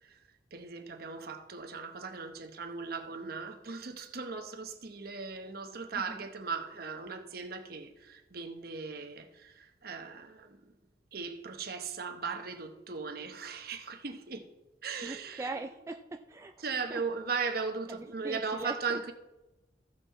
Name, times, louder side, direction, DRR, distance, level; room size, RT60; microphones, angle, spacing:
voice 1, 0.5-10.7 11.1-14.5 14.8-15.5 16.6-19.1, right 4 dB, 55° right, 1.0 m, -38 dB
voice 2, 5.9-6.3 15.0-16.5 16.9-17.0 17.9-19.0, right 2 dB, 15° right, 0.3 m, -41 dB
15.0 x 5.7 x 4.1 m
head